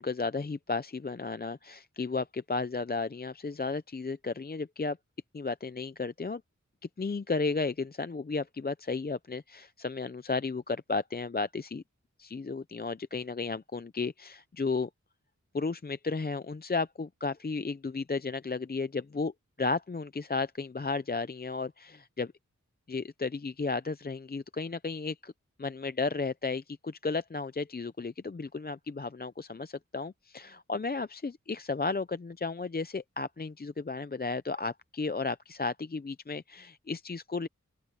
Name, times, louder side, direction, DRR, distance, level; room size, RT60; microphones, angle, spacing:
voice 1, 0.0-5.0 5.3-6.4 7.0-11.8 12.2-14.9 15.5-19.3 19.6-22.3 22.9-25.3 25.6-37.5, left 4 dB, 30° left, 0.5 m, -33 dB
open air
wide cardioid pair, 55°, 30 cm